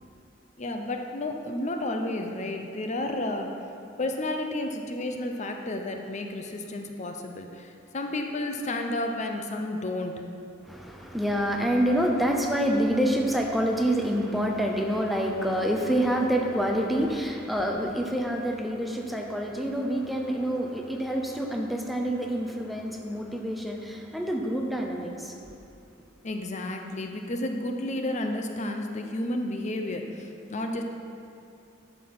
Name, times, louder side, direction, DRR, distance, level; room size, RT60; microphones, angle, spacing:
voice 1, 0.6-3.5 4.0-10.2 26.2-30.8, left 1 dB, 35° left, 4 dB, 0.7 m, -31 dB
voice 2, 10.7-25.3, equal, ahead, 1 dB, 0.7 m, -27 dB
11.0 x 6.2 x 6.0 m, 2.6 s
head